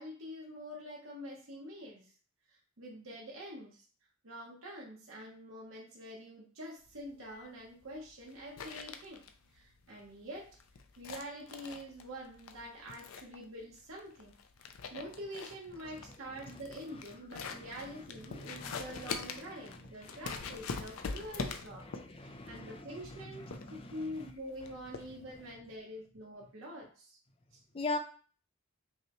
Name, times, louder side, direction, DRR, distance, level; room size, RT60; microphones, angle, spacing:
voice 1, 0.0-2.1 2.8-3.8 4.2-9.2 9.5-10.5 11.0-14.3 14.9-21.8 22.2-27.2, equal, 75° right, -3 dB, 1.0 m, -46 dB
sound 1, 6.8-25.5, left 5 dB, 80° left, 0.5 m, -44 dB
voice 2, 17.4-18.0 18.3-19.1 19.6-19.8 20.0-24.1 27.7-28.0, left 2 dB, 25° left, 6 dB, 0.5 m, -43 dB
5.4 x 2.2 x 3.0 m, 0.41 s
head